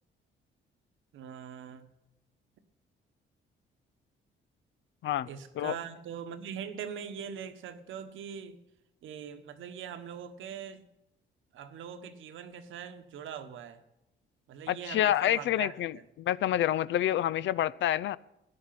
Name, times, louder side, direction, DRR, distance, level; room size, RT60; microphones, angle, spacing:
voice 1, 1.1-1.9 5.3-8.6 9.0-10.8 11.5-13.8 14.5-16.0, right 8 dB, 80° right, 10 dB, 1.4 m, -42 dB
voice 2, 14.7-18.2, left 12 dB, 70° left, 19 dB, 0.5 m, -28 dB
15.0 x 9.7 x 5.9 m, 0.91 s
cardioid pair, 90°, 20 cm